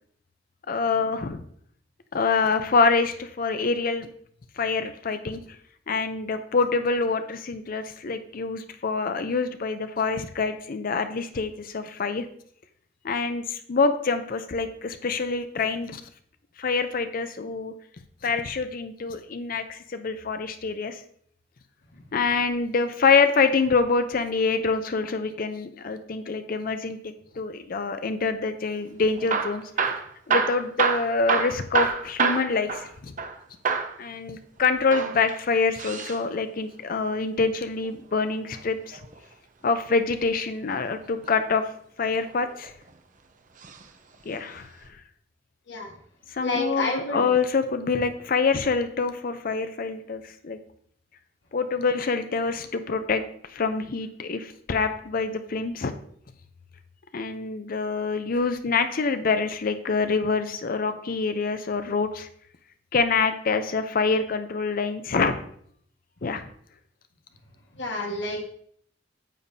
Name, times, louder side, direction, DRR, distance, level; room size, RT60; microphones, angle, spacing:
voice 1, 0.7-1.4 2.1-4.1 4.6-5.4 5.9-12.3 13.0-16.0 16.6-17.7 18.2-21.0 22.1-27.0 27.4-29.6 30.3-33.1 34.0-39.0 39.6-41.6 42.0-42.7 44.2-44.7 46.3-50.6 51.5-53.2 53.5-55.9 57.1-62.3 62.9-65.4 66.2-66.4, left 4 dB, 50° left, 9 dB, 0.6 m, -26 dB
Hammer / Drill, 29.1-33.4 33.6-34.0 34.8-36.2 38.0-39.2 40.9-41.4 42.1-42.9 43.6-43.8 44.1-44.2 44.9-45.0, right 5 dB, 45° right, 0.7 m, -27 dB
voice 2, 46.4-47.3 67.7-68.5, left 2 dB, 85° left, 0 dB, 1.5 m, -29 dB
9.2 x 7.2 x 2.7 m, 0.63 s
head